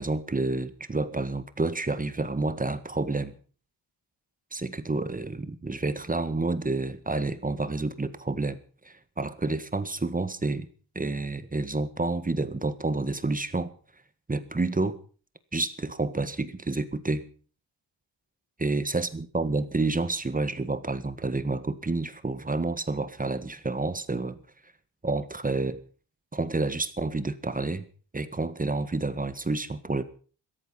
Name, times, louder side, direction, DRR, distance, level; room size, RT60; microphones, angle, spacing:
voice 1, 0.0-3.3 4.5-8.6 8.8-10.7 10.9-13.7 14.3-15.0 15.5-17.2 18.6-24.4 25.0-25.8 26.3-27.9 28.1-30.0, right 3 dB, 20° right, 12 dB, 1.6 m, -29 dB
16.0 x 14.5 x 5.9 m, 0.41 s
cardioid pair, 105°, 46 cm